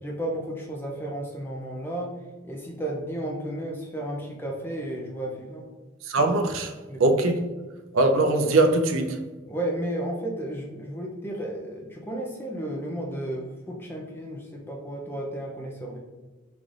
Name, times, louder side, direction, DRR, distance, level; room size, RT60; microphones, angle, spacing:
voice 1, 0.0-2.1 2.4-5.7 6.9-7.0 9.5-16.0, right 1 dB, 10° left, 0.4 m, -33 dB
voice 2, 6.0-7.4 7.9-9.2, right 2 dB, 80° right, 0.5 m, -22 dB
3.9 x 3.2 x 2.4 m
head